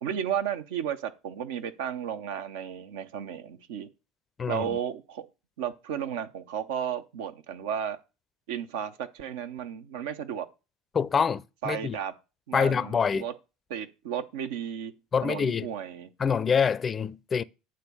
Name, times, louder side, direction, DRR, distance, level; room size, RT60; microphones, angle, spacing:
voice 1, 0.0-3.9 4.5-5.3 5.6-8.0 8.5-10.5 11.6-12.1 12.5-13.3 13.7-15.0 15.2-16.1, right 8 dB, 70° right, 0.7 m, -33 dB
voice 2, 4.4-4.8 10.9-12.0 12.5-13.2 15.1-15.7 16.2-17.4, left 6 dB, 30° left, 0.4 m, -26 dB
9.0 x 3.7 x 6.7 m
hypercardioid pair, 70°, 0 cm